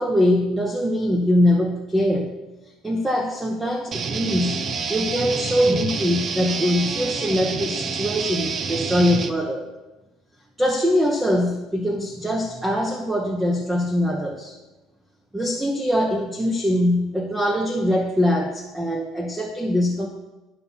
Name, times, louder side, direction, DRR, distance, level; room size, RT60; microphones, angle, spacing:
voice 1, 0.0-2.4 2.8-4.6 4.9-9.7 10.6-14.5 15.3-20.1, equal, 10° right, 2 dB, 0.9 m, -22 dB
sound 1, 3.9-9.3, right 5 dB, 35° right, 0.7 m, -28 dB
11.5 x 5.9 x 5.5 m, 1.1 s
cardioid pair, 140°, 0 cm